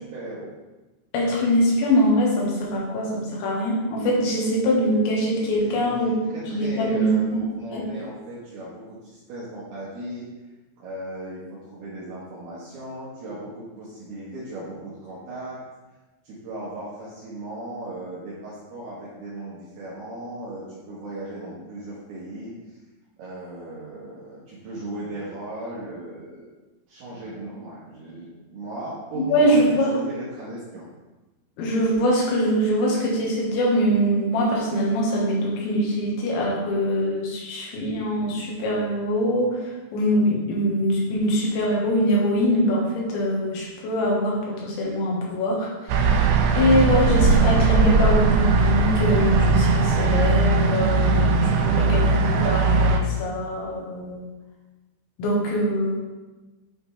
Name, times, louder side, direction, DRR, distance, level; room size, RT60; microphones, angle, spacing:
voice 1, 0.1-0.5 5.6-10.3 10.8-15.6 16.2-22.8 23.2-26.5 26.9-29.6 29.9-30.9, right 1 dB, 65° right, -8 dB, 3.0 m, -37 dB
voice 2, 1.1-6.1 6.5-7.1 7.7-7.8 29.2-29.9 31.6-46.1 46.6-54.2 55.2-56.1, equal, 75° left, -3 dB, 3.8 m, -23 dB
sound 1, 45.9-53.0, right 4 dB, 85° right, 3.0 m, -19 dB
9.1 x 5.3 x 3.4 m, 1.1 s
omnidirectional pair, 5.3 m